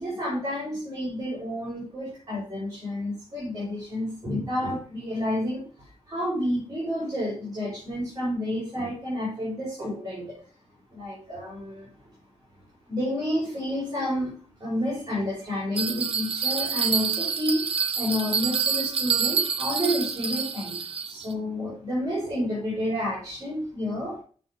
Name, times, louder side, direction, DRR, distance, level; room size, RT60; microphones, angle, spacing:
voice 1, 0.0-5.7 6.1-10.4 10.9-11.9 12.9-14.3 14.6-20.8 21.1-24.2, left 1 dB, 35° right, -6 dB, 3.8 m, -30 dB
Bell, 15.8-21.3, right 6 dB, 60° right, 0.7 m, -27 dB
7.6 x 5.9 x 3.4 m, 0.41 s
wide cardioid pair, 155°, 11 cm